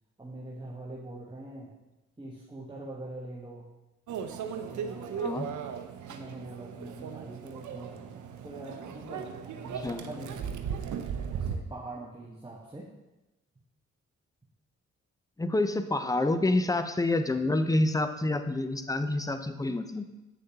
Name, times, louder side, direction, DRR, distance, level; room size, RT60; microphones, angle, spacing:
voice 1, 0.2-1.7 2.2-3.7 4.7-5.2 6.1-8.1 8.4-10.9 11.3-12.9, right 2 dB, 15° right, -4 dB, 1.3 m, -43 dB
Microwave oven, 4.1-11.6, right 7 dB, 75° right, 0.6 m, -37 dB
voice 2, 15.4-20.0, left 2 dB, 10° left, 9 dB, 0.6 m, -28 dB
8.4 x 6.4 x 2.9 m, 1.0 s
supercardioid pair, 45°, 30 cm